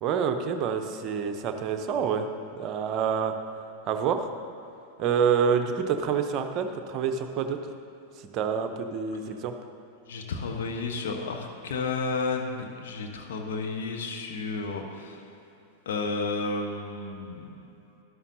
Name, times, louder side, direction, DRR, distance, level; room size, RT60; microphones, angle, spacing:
voice 1, 0.0-2.3 2.5-3.3 3.9-4.3 5.0-7.6 8.3-9.5, right 7 dB, 40° right, 7 dB, 0.8 m, -27 dB
voice 2, 10.1-15.2 15.9-17.6, left 3 dB, 60° left, 2 dB, 1.0 m, -32 dB
12.5 x 12.0 x 2.7 m, 2.9 s
figure-of-eight pair, 90°, 0 cm